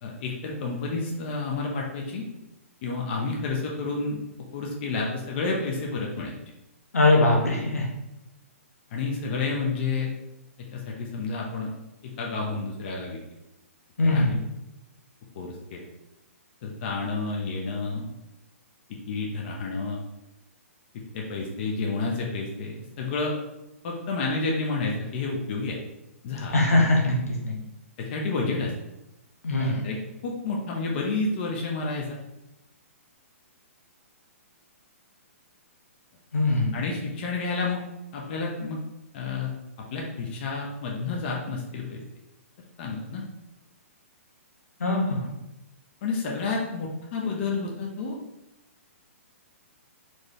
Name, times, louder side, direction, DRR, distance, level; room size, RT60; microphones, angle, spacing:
voice 1, 0.0-2.2 2.8-4.2 4.5-6.4 8.9-10.1 10.7-11.7 12.0-13.2 14.1-14.2 15.3-15.9 16.6-18.1 19.1-20.0 21.1-23.3 23.8-25.8 26.2-26.5 28.0-28.7 29.6-30.0 30.2-32.2 36.7-37.8 38.1-38.8 39.1-39.5 39.9-42.0 42.8-43.2 46.0-48.2, left 3 dB, 45° left, -1 dB, 0.8 m, -30 dB
voice 2, 6.9-7.9 14.0-14.4 26.5-27.5 29.4-29.8 36.3-36.7 44.8-45.2, left 2 dB, 85° left, 0 dB, 1.2 m, -21 dB
4.4 x 3.1 x 3.2 m, 0.92 s
hypercardioid pair, 130°, 8 cm